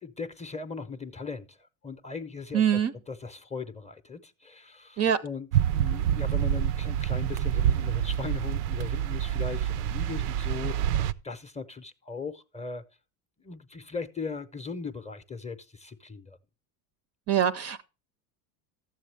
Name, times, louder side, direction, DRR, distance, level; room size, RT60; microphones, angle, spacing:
voice 1, 0.0-2.8 3.1-5.5 5.7-12.8 13.4-16.4, left 4 dB, 15° left, 0.6 m, -38 dB
voice 2, 2.5-2.9 5.0-5.2 17.3-17.8, right 9 dB, 35° right, 0.4 m, -24 dB
sound 1, 5.5-11.1, right 10 dB, 90° right, 0.5 m, -27 dB
13.0 x 7.6 x 3.2 m
supercardioid pair, 95°, 47 cm